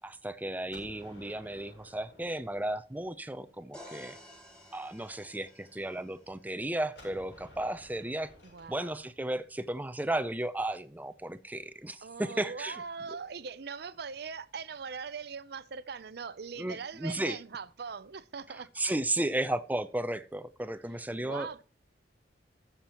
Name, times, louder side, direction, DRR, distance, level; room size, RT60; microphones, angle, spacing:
voice 1, 0.0-4.2 4.7-8.3 8.7-12.8 16.6-17.4 18.8-21.5, right 1 dB, 10° right, 0.6 m, -34 dB
Gunshot gunfire, 0.7-3.5 7.0-10.8, left 1 dB, 75° left, 7.2 m, -56 dB
sound 1, 3.7-7.6, left 1 dB, 5° left, 2.4 m, -53 dB
voice 2, 8.4-9.0 12.0-18.7 21.1-21.6, right 5 dB, 60° right, 0.6 m, -41 dB
19.5 x 7.3 x 3.0 m
head